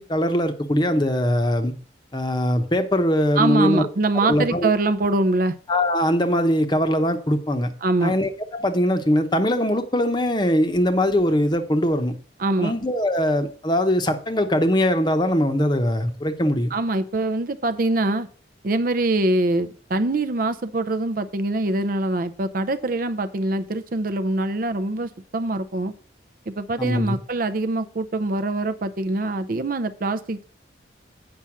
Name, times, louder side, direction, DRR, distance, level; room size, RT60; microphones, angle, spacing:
voice 1, 0.0-1.7 2.1-3.9 4.2-4.7 5.7-7.7 8.0-12.2 12.6-16.7 26.8-27.2, equal, 25° left, 8 dB, 0.8 m, -21 dB
voice 2, 3.4-5.5 7.8-8.1 12.4-12.7 16.7-18.3 18.6-25.9 26.5-30.4, right 2 dB, 50° right, 11 dB, 0.5 m, -24 dB
8.6 x 5.6 x 6.0 m, 0.43 s
head